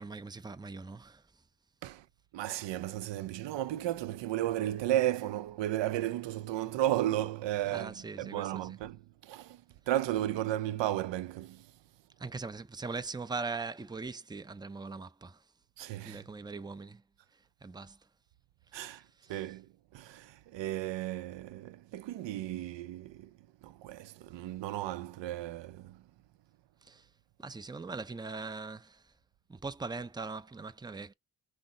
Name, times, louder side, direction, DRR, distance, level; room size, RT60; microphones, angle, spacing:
voice 1, 0.0-1.4 7.7-8.8 12.2-15.4 16.0-17.0 17.3-18.0 18.7-19.5 26.8-27.1 27.4-29.1 29.5-31.1, right 4 dB, 10° right, 0.5 m, -41 dB
voice 2, 2.3-11.7 15.8-16.2 18.7-19.0 19.3-23.4 23.6-26.0, right 13 dB, 80° right, 0.5 m, -34 dB
5.8 x 2.1 x 3.8 m
cardioid pair, 65°, 43 cm